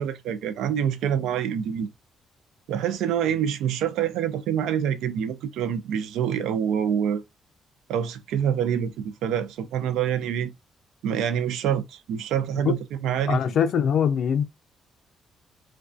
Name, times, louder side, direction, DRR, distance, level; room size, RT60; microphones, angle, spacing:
voice 1, 0.0-1.9 2.7-7.2 7.9-10.5 11.0-12.8 13.0-13.4, right 9 dB, 85° right, 0.3 m, -26 dB
voice 2, 13.3-14.4, left 7 dB, 65° left, 0.4 m, -22 dB
2.5 x 2.2 x 2.3 m
cardioid pair, 90°, 0 cm